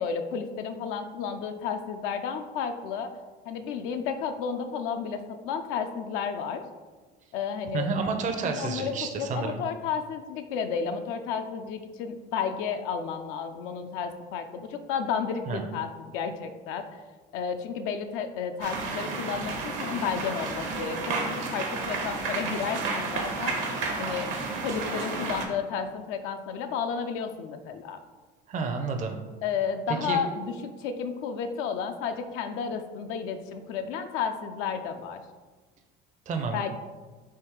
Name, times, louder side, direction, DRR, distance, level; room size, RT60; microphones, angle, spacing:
voice 1, 0.0-3.1 3.5-6.6 7.3-7.9 8.4-16.8 17.3-23.6 24.0-24.3 24.6-28.0 29.4-30.5 30.8-35.2 36.5-36.7, left 6 dB, 75° left, 7 dB, 0.4 m, -32 dB
voice 2, 7.7-9.6 15.5-15.6 28.5-29.2 29.9-30.2 36.3-36.6, right 4 dB, 35° right, 4 dB, 0.5 m, -30 dB
sound 1, 18.6-25.5, right 3 dB, 75° right, 0.9 m, -31 dB
3.5 x 2.8 x 4.6 m, 1.3 s
supercardioid pair, 90°, 21 cm